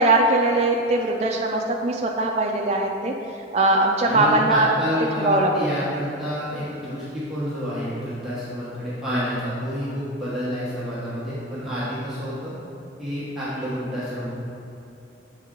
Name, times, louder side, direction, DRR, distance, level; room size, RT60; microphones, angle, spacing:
voice 1, 0.0-3.1 3.5-4.7 5.2-5.7, right 2 dB, 35° right, 0 dB, 0.3 m, -20 dB
voice 2, 4.0-12.5 13.0-14.3, equal, ahead, -12 dB, 1.1 m, -29 dB
7.5 x 4.2 x 3.7 m, 2.7 s
head